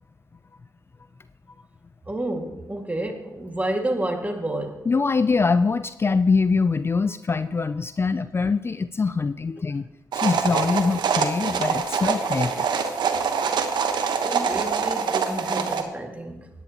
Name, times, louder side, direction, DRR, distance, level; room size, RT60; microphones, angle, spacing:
voice 1, 2.1-4.9 11.4-11.6 14.2-16.5, right 1 dB, 20° right, 2.1 m, -30 dB
voice 2, 4.9-9.9 10.1-12.7, left 4 dB, 30° left, 0.4 m, -23 dB
sound 1, 10.1-15.8, right 6 dB, 70° right, 1.1 m, -25 dB
16.0 x 10.0 x 3.0 m
supercardioid pair, 55°, 8 cm